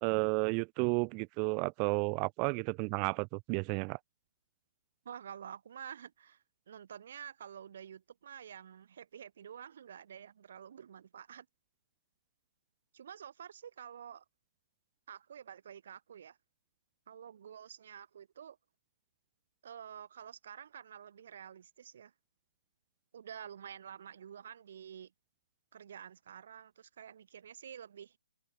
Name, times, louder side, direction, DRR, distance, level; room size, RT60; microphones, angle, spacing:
voice 1, 0.0-4.0, right 35 dB, 30° right, 0.4 m, -32 dB
voice 2, 5.0-11.5 12.9-14.2 15.1-16.4 17.1-18.6 19.6-22.1 23.1-25.1 25.7-28.2, right 8 dB, 55° right, 1.1 m, -49 dB
figure-of-eight pair, 135°, 0 cm